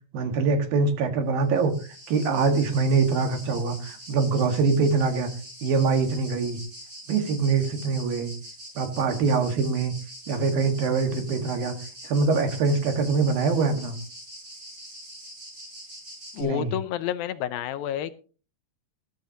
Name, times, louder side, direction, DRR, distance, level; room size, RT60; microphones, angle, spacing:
voice 1, 0.1-1.8 2.1-5.3 5.6-6.6 7.1-8.3 8.8-9.9 10.3-11.7 12.0-14.0 16.4-16.7, right 4 dB, 75° right, 7 dB, 3.4 m, -24 dB
sound 1, 1.4-16.4, equal, 20° right, 6.2 m, -43 dB
voice 2, 16.3-18.1, left 11 dB, 80° left, 12 dB, 2.5 m, -29 dB
20.0 x 11.5 x 2.8 m, 0.36 s
omnidirectional pair, 4.3 m